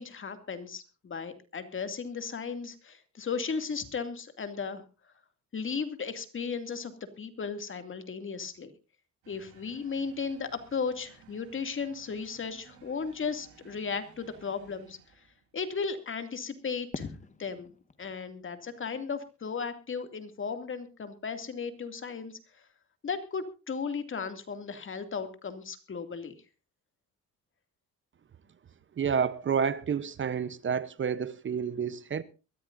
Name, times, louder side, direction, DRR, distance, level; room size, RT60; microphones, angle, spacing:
voice 1, 0.0-4.8 5.5-8.7 9.3-15.2 15.5-17.1 17.4-17.7 18.0-22.4 23.0-26.3, left 5 dB, 40° left, 2.4 m, -35 dB
sound 1, 9.2-15.5, right 6 dB, 90° right, 7.9 m, -58 dB
Fireworks, 16.9-20.0, left 4 dB, 25° left, 1.5 m, -47 dB
voice 2, 29.0-32.2, right 7 dB, 40° right, 0.9 m, -29 dB
23.0 x 14.5 x 2.6 m
cardioid pair, 90°, 30 cm